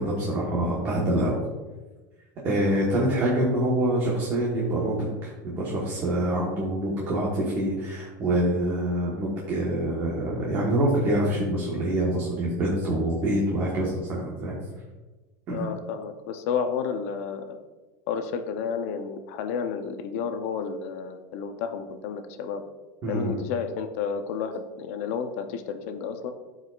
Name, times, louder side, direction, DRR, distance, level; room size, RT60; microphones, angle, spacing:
voice 1, 0.0-1.4 2.4-14.6 15.5-15.7 23.0-23.4, right 1 dB, 25° right, -5 dB, 1.2 m, -26 dB
voice 2, 15.5-17.6 18.1-22.6 23.1-26.3, left 6 dB, 55° left, 7 dB, 0.7 m, -31 dB
12.5 x 4.8 x 2.4 m, 1.2 s
supercardioid pair, 175°, 10 cm